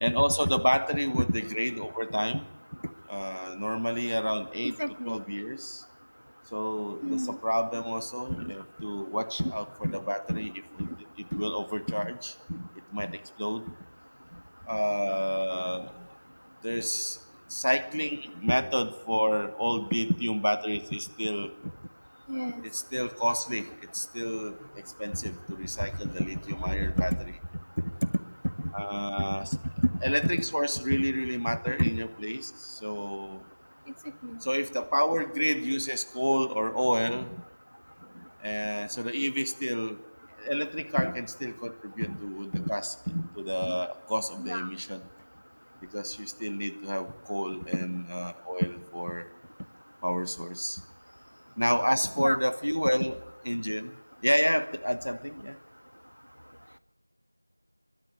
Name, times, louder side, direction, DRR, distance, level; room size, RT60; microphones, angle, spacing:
voice 1, 0.0-2.5 3.1-4.7 5.1-5.8 6.5-10.5 10.8-10.9 11.2-12.3 12.9-13.6 14.6-16.1 16.6-17.2 17.5-21.5 22.6-27.1 28.7-29.5 30.0-33.4 34.4-37.3 38.4-40.0 40.4-42.9 43.4-45.0 45.9-49.3 50.0-50.8 51.6-53.2 53.4-55.6, equal, 40° left, 10 dB, 1.2 m, -30 dB
voice 2, 4.6-5.1 7.0-7.4 8.3-8.5 9.4-9.5 9.8-10.0 10.3-10.4 10.8-10.9 11.3-11.4 12.5-12.7 18.5-18.6 22.3-22.6 29.8-29.9 31.8-31.9 41.0-41.1 42.0-42.2 42.5-42.7 43.1-43.3 43.6-43.8 44.4-44.7 52.2-52.4, equal, 85° right, 11 dB, 1.6 m, -29 dB
24.0 x 12.0 x 9.9 m, 0.95 s
figure-of-eight pair, 180°, 0 cm